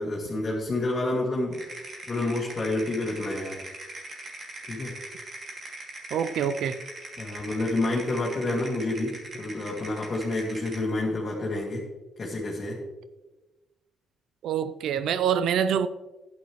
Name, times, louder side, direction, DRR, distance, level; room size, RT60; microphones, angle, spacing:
voice 1, 0.0-1.6 2.1-3.6 4.7-4.9 7.2-11.8 12.2-12.8, left 2 dB, 35° left, 2.2 m, -29 dB
sound 1, 1.5-10.9, right 2 dB, 45° right, 2.7 m, -41 dB
voice 2, 6.1-6.8 14.4-15.9, right 8 dB, 75° right, 0.4 m, -25 dB
11.5 x 9.5 x 3.2 m
cardioid pair, 90°, 0 cm